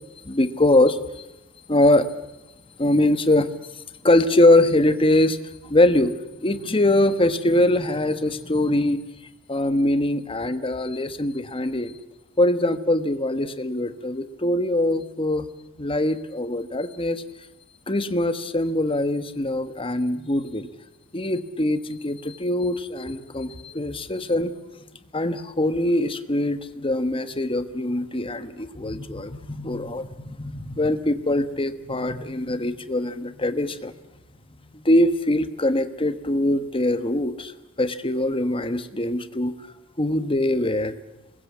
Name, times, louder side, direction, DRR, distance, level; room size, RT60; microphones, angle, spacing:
voice 1, 0.2-1.2 1.7-2.1 2.8-3.5 4.0-5.4 5.7-6.1 6.4-9.0 9.5-11.9 12.4-15.5 15.8-17.2 17.9-20.7 21.1-24.5 25.1-33.9 34.7-37.5 37.8-39.5 40.0-40.9, left 1 dB, 25° left, 11 dB, 1.2 m, -22 dB
26.0 x 21.5 x 8.5 m, 0.95 s
head